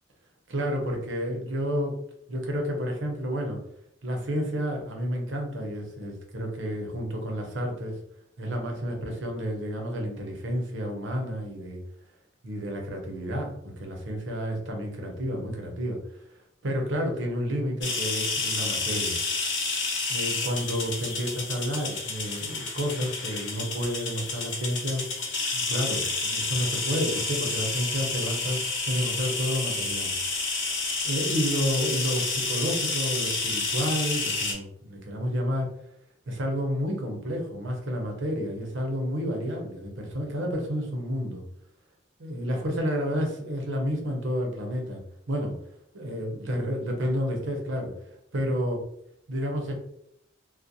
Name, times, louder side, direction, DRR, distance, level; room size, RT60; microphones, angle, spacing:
voice 1, 0.5-2.0 2.3-3.6 4.0-8.0 8.4-11.8 12.4-16.0 16.6-19.2 20.1-25.0 25.5-28.6 28.9-30.1 31.0-35.7 36.3-41.4 42.2-45.0 45.3-45.6 45.9-47.9 48.3-48.8 49.3-49.7, equal, 90° right, 1 dB, 0.7 m, -30 dB
sound 1, 17.8-34.5, left 3 dB, 75° left, 0.8 m, -30 dB
2.4 x 2.1 x 2.6 m, 0.71 s
head